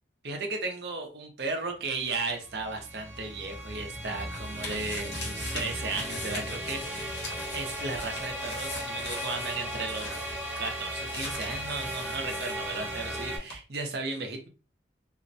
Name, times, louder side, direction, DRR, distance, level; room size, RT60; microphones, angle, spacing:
voice 1, 0.2-7.2 7.5-10.2 10.6-14.5, right 3 dB, 60° right, 4 dB, 0.5 m, -35 dB
sound 1, 2.0-13.4, right 1 dB, 10° right, 0.7 m, -36 dB
sound 2, 3.6-13.2 13.5-13.6, left 2 dB, 60° left, 0.8 m, -41 dB
2.5 x 2.1 x 2.5 m, 0.36 s
head